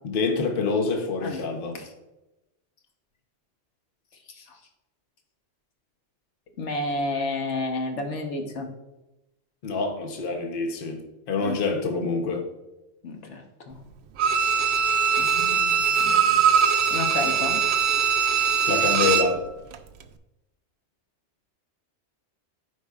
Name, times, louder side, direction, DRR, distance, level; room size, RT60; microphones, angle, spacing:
voice 1, 0.0-1.8 9.6-11.0 11.3-12.5 18.7-19.4, left 4 dB, 55° left, 4 dB, 1.0 m, -26 dB
voice 2, 6.6-8.7 11.4-11.6 13.0-13.8 15.2-16.4 16.9-17.6, left 2 dB, 85° left, 3 dB, 1.3 m, -31 dB
Bowed string instrument, 14.2-19.4 19.7-19.8, right 7 dB, 70° right, 0.8 m, -21 dB
14.0 x 4.7 x 2.4 m, 0.98 s
omnidirectional pair, 1.2 m